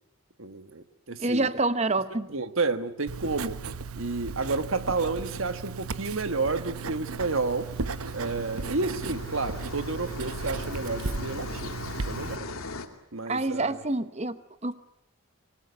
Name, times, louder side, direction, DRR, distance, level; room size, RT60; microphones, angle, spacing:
voice 1, 0.4-1.5 2.3-3.6 3.9-7.7 8.1-11.8 12.1-12.5 13.1-13.8, right 3 dB, 70° right, 11 dB, 1.5 m, -30 dB
voice 2, 1.2-2.3 13.3-14.8, right 2 dB, 30° right, 13 dB, 1.0 m, -27 dB
Writing, 3.1-12.4, right 4 dB, 85° right, 0.9 m, -36 dB
sound 1, 7.0-12.9, left 3 dB, 80° left, 2.6 m, -40 dB
25.0 x 20.0 x 9.7 m, 0.80 s
head